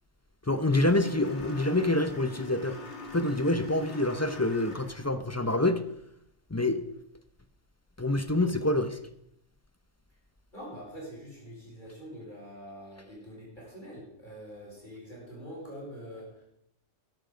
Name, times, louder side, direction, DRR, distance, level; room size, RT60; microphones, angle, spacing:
voice 1, 0.5-2.8 3.1-5.8 6.5-6.8 8.0-9.0, left 2 dB, 15° left, 10 dB, 0.7 m, -26 dB
sound 1, 0.7-5.1, left 2 dB, 70° left, 2.1 m, -43 dB
voice 2, 10.5-16.4, equal, 45° left, -5 dB, 5.2 m, -44 dB
13.5 x 11.0 x 5.1 m, 0.75 s
omnidirectional pair, 1.2 m